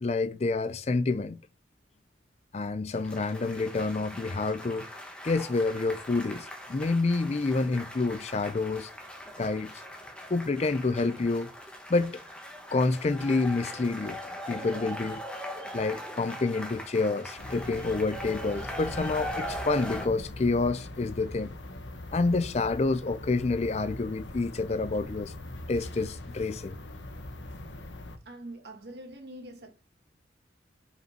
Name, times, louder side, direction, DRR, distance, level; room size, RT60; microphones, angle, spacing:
voice 1, 0.0-1.4 2.5-4.9 5.2-8.9 9.4-9.7 10.3-11.5 11.9-12.2 12.7-14.2 14.5-15.2 15.7-21.6 22.1-25.3 25.7-26.8, left 3 dB, 35° left, 0.4 m, -28 dB
sound 1, 2.9-20.1, equal, 5° left, 1.3 m, -41 dB
sound 2, 17.4-28.2, left 1 dB, 75° left, 1.0 m, -42 dB
voice 2, 28.3-29.7, right 1 dB, 60° right, 2.0 m, -44 dB
5.4 x 5.1 x 5.9 m
head